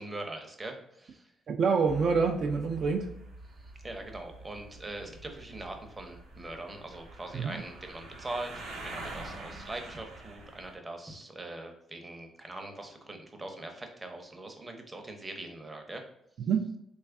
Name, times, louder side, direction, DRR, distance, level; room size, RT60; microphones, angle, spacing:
voice 1, 0.0-1.3 3.6-16.0, right 2 dB, 25° right, 4 dB, 0.7 m, -42 dB
voice 2, 1.5-3.1 7.3-7.6 16.4-16.7, right 5 dB, 60° right, 3 dB, 0.3 m, -27 dB
sound 1, 1.9-10.8, right 2 dB, 80° right, 0.8 m, -46 dB
3.2 x 2.3 x 3.4 m, 0.79 s
cardioid pair, 90°, 0 cm